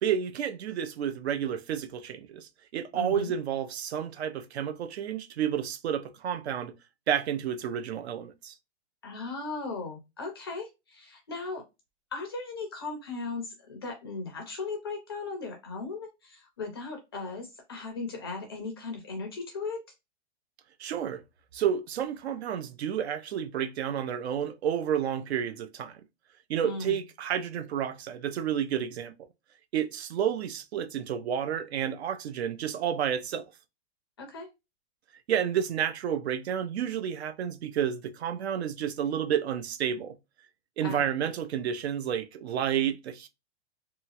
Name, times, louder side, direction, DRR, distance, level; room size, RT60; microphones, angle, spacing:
voice 1, 0.0-6.7 7.1-8.5 20.8-21.2 21.5-26.0 26.5-29.3 29.7-33.5 35.3-40.2 40.8-43.3, right 9 dB, 70° right, 0.6 m, -30 dB
voice 2, 2.9-3.3 9.0-11.6 12.1-19.8 26.6-27.0 34.2-34.5 40.8-41.1, left 3 dB, 25° left, 0.4 m, -37 dB
2.8 x 2.3 x 2.8 m
hypercardioid pair, 175°, 33 cm